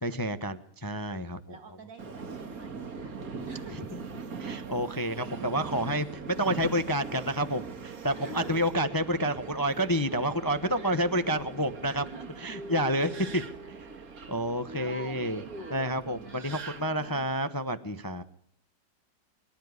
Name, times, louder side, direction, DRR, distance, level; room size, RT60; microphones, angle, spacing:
voice 1, 0.0-1.5 4.4-6.1 6.4-12.0 12.4-13.4 14.3-15.4 15.7-18.2, equal, 15° left, 10 dB, 0.7 m, -29 dB
voice 2, 1.5-4.0 6.0-6.3 8.1-8.7 11.9-12.5 13.6-13.7 14.8-17.2, right 2 dB, 80° right, 8 dB, 3.5 m, -48 dB
Subway metro underground, 2.0-17.2, right 5 dB, 50° right, 2.1 m, -41 dB
24.0 x 12.5 x 9.6 m, 0.64 s
omnidirectional pair, 2.0 m